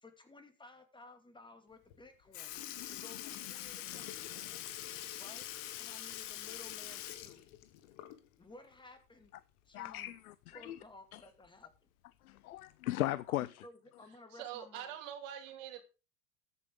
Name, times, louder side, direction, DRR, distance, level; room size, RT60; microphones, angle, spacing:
voice 1, 0.0-4.5 5.2-5.5 5.8-7.5 8.4-9.3 9.7-10.1 10.5-11.7 13.3-13.4 13.6-14.9, left 2 dB, 10° left, 2.4 m, -56 dB
Sink (filling or washing) / Liquid, 1.9-2.0 2.3-8.4 8.8-8.9 10.4-10.5 11.5-11.6 12.4-12.6 13.4-13.5, left 13 dB, 65° left, 1.5 m, -44 dB
voice 2, 9.7-10.8 11.1-11.2 12.3-13.5, left 15 dB, 85° left, 0.6 m, -37 dB
voice 3, 14.1-15.8, right 10 dB, 65° right, 2.7 m, -45 dB
13.5 x 8.3 x 3.8 m
hypercardioid pair, 95°, 42 cm